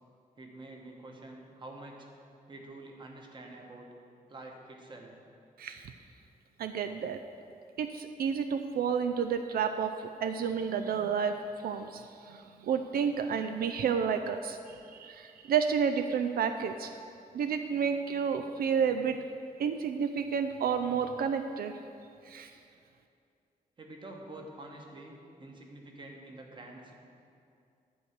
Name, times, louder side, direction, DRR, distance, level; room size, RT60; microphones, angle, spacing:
voice 1, 0.4-2.0 2.5-3.9 4.3-5.1 23.8-26.9, right 2 dB, 30° right, 1 dB, 1.2 m, -47 dB
voice 2, 5.6-5.9 6.6-7.2 7.8-11.3 11.6-16.9 17.3-19.2 19.6-21.7 22.3-22.5, right 7 dB, 85° right, 8 dB, 0.5 m, -30 dB
10.5 x 4.7 x 8.0 m, 2.4 s
wide cardioid pair, 180°, 15 cm